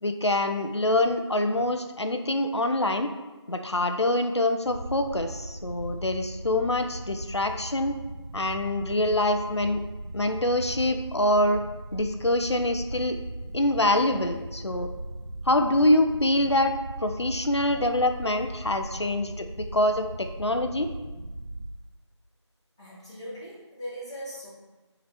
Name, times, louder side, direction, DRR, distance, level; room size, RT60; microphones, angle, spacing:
voice 1, 0.0-3.1 3.5-8.0 8.3-9.8 10.1-11.6 11.9-13.2 13.5-14.9 15.5-16.7 17.0-19.5 19.7-20.9, left 1 dB, 65° left, 6 dB, 0.7 m, -25 dB
sound 1, 4.6-21.7, right 1 dB, 55° right, 0.6 m, -38 dB
voice 2, 22.8-24.5, equal, 10° left, -14 dB, 1.6 m, -39 dB
7.0 x 4.1 x 4.2 m, 1.2 s
figure-of-eight pair, 175°, 15 cm